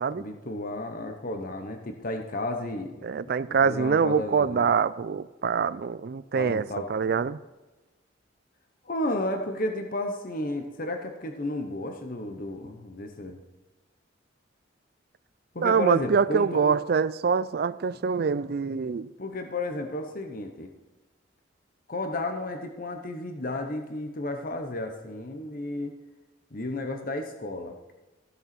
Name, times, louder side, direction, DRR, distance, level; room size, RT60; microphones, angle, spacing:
voice 1, 0.1-3.0 3.5-4.7 6.4-6.9 8.8-13.4 15.5-16.8 19.2-20.7 21.9-25.9 26.5-27.9, left 2 dB, 50° left, 5 dB, 1.0 m, -33 dB
voice 2, 3.0-7.4 15.6-19.1, right 5 dB, 55° right, 17 dB, 0.4 m, -25 dB
15.0 x 6.8 x 4.4 m, 1.1 s
head